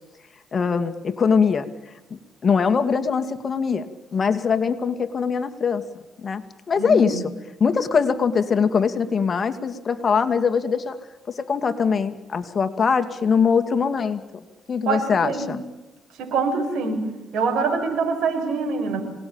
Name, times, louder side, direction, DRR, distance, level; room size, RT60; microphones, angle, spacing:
voice 1, 0.5-1.7 2.1-3.9 4.1-5.8 6.2-7.2 7.6-11.0 11.3-14.4 14.7-15.6, left 6 dB, 40° left, 8 dB, 2.3 m, -22 dB
voice 2, 6.8-7.2 14.8-15.6 16.2-17.1 17.3-19.0, right 4 dB, 80° right, 6 dB, 6.4 m, -24 dB
27.5 x 19.0 x 8.9 m, 1.0 s
cardioid pair, 90°, 0 cm